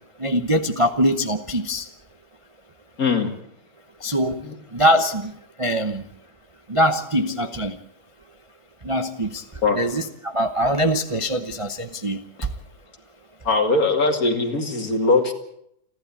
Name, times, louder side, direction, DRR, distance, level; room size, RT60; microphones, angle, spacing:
voice 1, 0.2-1.8 4.0-4.4 4.7-5.3 5.6-6.0 6.7-7.7 8.9-9.4 9.7-10.1 10.3-12.2, equal, 25° right, 7 dB, 0.8 m, -22 dB
voice 2, 3.0-3.3 4.4-4.6 9.6-9.8 13.4-15.3, left 3 dB, 50° left, 5 dB, 2.9 m, -20 dB
29.5 x 11.5 x 8.6 m, 0.73 s
omnidirectional pair, 1.9 m